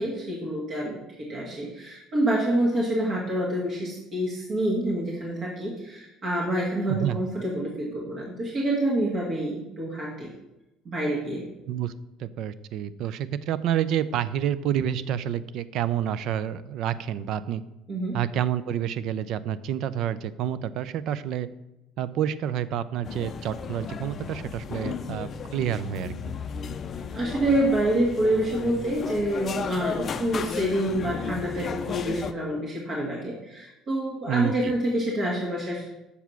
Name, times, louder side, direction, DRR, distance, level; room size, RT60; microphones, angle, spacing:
voice 1, 0.0-10.3 10.9-11.5 17.9-18.2 27.1-35.9, right 1 dB, 40° right, -3 dB, 1.6 m, -27 dB
voice 2, 6.9-7.2 11.7-11.9 12.2-17.6 18.1-21.5 22.0-26.3 34.3-34.7, right 10 dB, 60° right, 16 dB, 0.4 m, -29 dB
sound 1, 23.0-32.3, left 6 dB, 35° left, 0.5 m, -34 dB
6.8 x 4.8 x 5.8 m, 0.97 s
cardioid pair, 135°, 0 cm